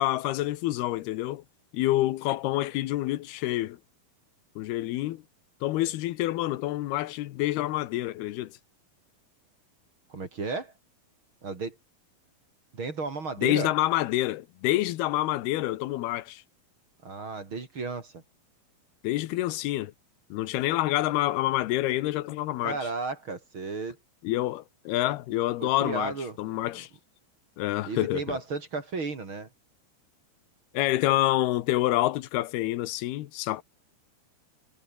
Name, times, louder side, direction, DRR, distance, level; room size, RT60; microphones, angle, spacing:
voice 1, 0.0-1.4 1.7-3.8 4.6-5.2 5.6-8.5 13.4-16.4 19.0-19.9 20.3-22.8 24.2-26.1 26.4-26.9 27.6-28.4 30.7-33.6, left 16 dB, 90° left, 3.0 m, -27 dB
voice 2, 10.1-10.7 11.4-11.8 12.7-13.7 17.0-18.2 22.6-24.0 25.6-26.4 27.8-29.5, right 4 dB, 35° right, 3.5 m, -34 dB
omnidirectional pair, 4.4 m